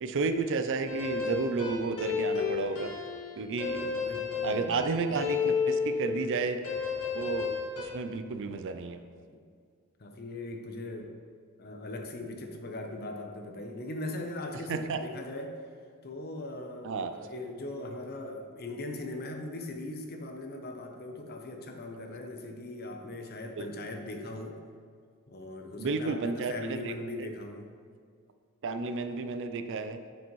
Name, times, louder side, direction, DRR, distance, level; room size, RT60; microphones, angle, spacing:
voice 1, 0.0-2.9 3.4-3.9 4.4-6.6 7.1-7.5 7.8-9.0 14.7-15.0 16.8-17.1 23.6-23.7 25.8-26.9 28.6-30.0, right 4 dB, 60° right, 9 dB, 0.4 m, -32 dB
sound 1, 0.9-6.4 6.6-7.8, left 5 dB, 75° left, 1.5 m, -32 dB
voice 2, 4.0-4.8 9.3-9.4 10.0-11.1 11.6-15.6 16.0-24.6 25.3-27.7, left 2 dB, 45° left, 4 dB, 0.7 m, -40 dB
8.7 x 5.2 x 3.1 m, 2.1 s
head